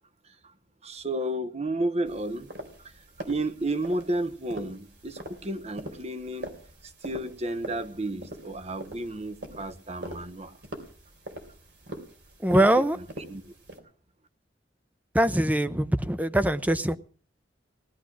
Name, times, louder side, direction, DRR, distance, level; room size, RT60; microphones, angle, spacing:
voice 1, 0.8-2.5 2.8-2.9 3.3-6.5 6.8-10.5 13.3-13.5, right 1 dB, 35° right, 1.2 m, -32 dB
sound 1, 2.1-13.8, right 1 dB, 70° right, 3.5 m, -43 dB
voice 2, 12.4-13.0 15.1-17.0, right 1 dB, 10° right, 0.7 m, -22 dB
18.5 x 12.0 x 6.1 m
head